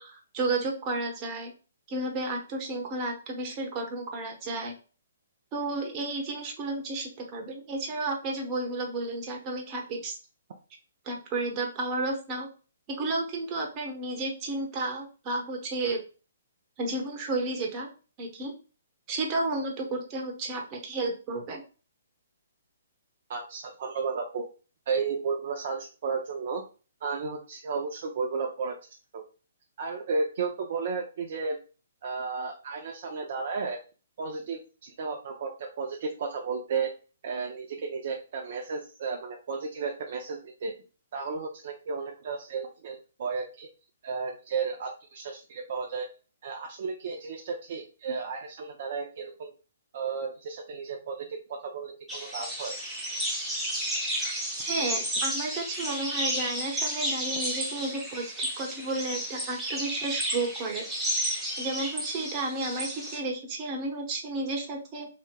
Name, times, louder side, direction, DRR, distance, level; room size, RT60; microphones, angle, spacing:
voice 1, 0.0-1.5 1.9-4.7 5.5-10.2 11.0-12.5 12.9-16.0 16.8-17.9 18.2-18.5 19.1-21.6 54.1-60.8 61.6-65.1, right 2 dB, 30° right, 0 dB, 1.0 m, -32 dB
voice 2, 23.3-24.4 24.9-26.6 27.0-28.8 29.1-29.3 29.8-31.6 32.0-33.8 34.2-36.9 37.2-40.7 41.1-43.7 44.0-46.1 46.4-49.5 49.9-52.8, right 5 dB, 55° right, 1 dB, 0.5 m, -33 dB
sound 1, 52.1-63.2, equal, 5° right, 0.9 m, -32 dB
3.2 x 2.8 x 2.3 m, 0.35 s
hypercardioid pair, 145°, 0 cm